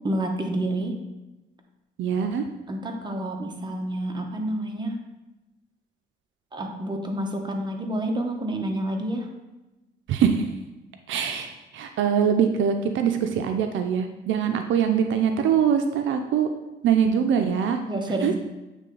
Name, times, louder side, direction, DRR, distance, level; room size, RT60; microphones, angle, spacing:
voice 1, 0.0-1.0 2.7-5.0 6.5-9.3 17.9-18.4, right 1 dB, 20° right, 2 dB, 1.0 m, -28 dB
voice 2, 2.0-2.4 10.1-10.5 11.1-16.5 16.8-17.8 18.2-18.3, right 7 dB, 75° right, 6 dB, 0.5 m, -23 dB
8.3 x 3.2 x 3.8 m, 1.0 s
cardioid pair, 90°, 20 cm